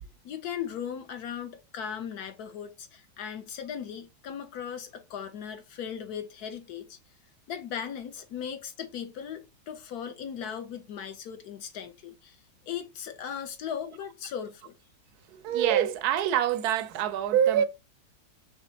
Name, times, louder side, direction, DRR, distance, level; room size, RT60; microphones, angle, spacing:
voice 1, 0.2-7.0 7.5-12.4 12.7-14.7, left 8 dB, 65° left, 1.0 m, -38 dB
voice 2, 15.3-17.6, right 10 dB, 75° right, 0.9 m, -25 dB
5.1 x 3.4 x 2.8 m
omnidirectional pair, 2.2 m